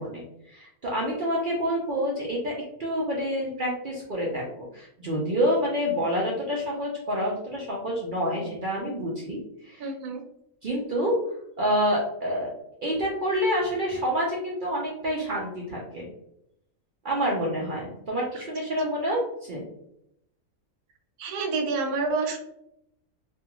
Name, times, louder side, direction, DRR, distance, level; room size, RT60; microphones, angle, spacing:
voice 1, 0.0-2.5 2.8-9.9 10.6-11.1 11.6-12.5 12.8-16.1 17.0-19.6, equal, 70° right, -3 dB, 0.4 m, -28 dB
voice 2, 9.8-10.2 21.2-22.4, right 4 dB, 85° right, 2 dB, 1.1 m, -28 dB
2.6 x 2.4 x 2.8 m, 0.79 s
omnidirectional pair, 1.6 m